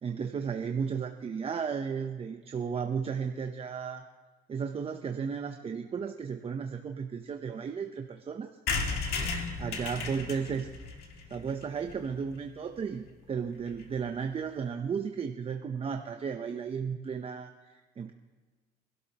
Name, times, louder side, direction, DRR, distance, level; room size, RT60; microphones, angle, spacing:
voice 1, 0.0-4.1 4.5-8.5 9.6-10.7 11.3-18.1, right 6 dB, 35° right, 5 dB, 0.8 m, -34 dB
sound 1, 8.7-12.3 12.8-12.9 13.1-13.2 13.4-13.5 13.7-13.9, left 4 dB, 65° left, 2.3 m, -35 dB
25.0 x 12.5 x 3.0 m, 1.3 s
cardioid pair, 110°, 17 cm